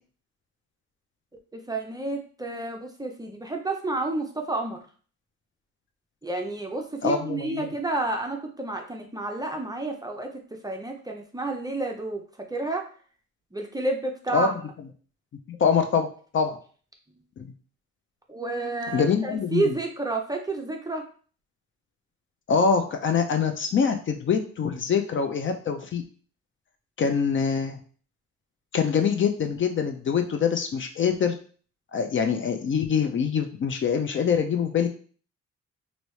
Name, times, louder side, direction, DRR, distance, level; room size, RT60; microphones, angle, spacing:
voice 1, 1.5-4.8 6.2-12.2 12.5-12.9 13.5-14.5 18.3-21.0, right 2 dB, 15° right, 2 dB, 0.5 m, -30 dB
voice 2, 7.0-7.7 14.3-14.6 15.5-16.1 16.3-16.6 17.4-17.5 18.9-19.7 22.5-26.0 27.0-27.8 28.7-31.3 31.9-34.9, left 6 dB, 40° left, 6 dB, 0.5 m, -24 dB
3.0 x 2.7 x 3.1 m, 0.42 s
cardioid pair, 90°, 30 cm